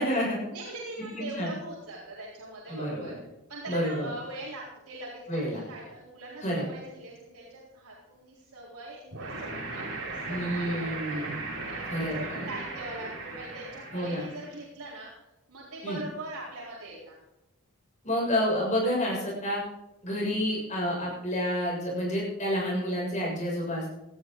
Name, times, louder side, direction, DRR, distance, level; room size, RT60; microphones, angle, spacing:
voice 1, 0.0-0.4 1.2-1.5 2.7-3.1 3.7-4.1 5.3-5.6 6.4-6.6 10.3-11.3 11.9-12.5 13.9-14.3 15.8-16.0 18.0-19.6 20.0-23.9, equal, 35° left, -3 dB, 7.0 m, -29 dB
voice 2, 0.5-3.1 3.5-11.2 11.7-15.1 15.5-17.2, right 2 dB, 90° right, -6 dB, 4.2 m, -42 dB
sound 1, 9.1-14.5, right 3 dB, 60° right, 5.3 m, -37 dB
18.0 x 13.5 x 3.9 m, 0.96 s
head